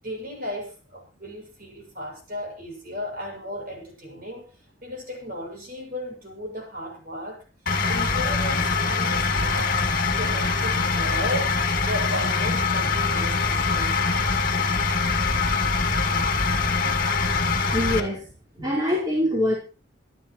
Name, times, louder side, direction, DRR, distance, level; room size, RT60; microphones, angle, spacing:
voice 1, 0.0-4.5 4.8-7.4 7.9-9.8 10.2-11.5 11.8-14.0, equal, 45° right, 0 dB, 7.4 m, -35 dB
sound 1, 7.7-18.0, left 4 dB, 45° left, 2.4 m, -23 dB
voice 2, 17.7-18.2 18.5-19.6, left 1 dB, 20° right, -5 dB, 4.9 m, -24 dB
26.0 x 12.5 x 3.2 m, 0.34 s
head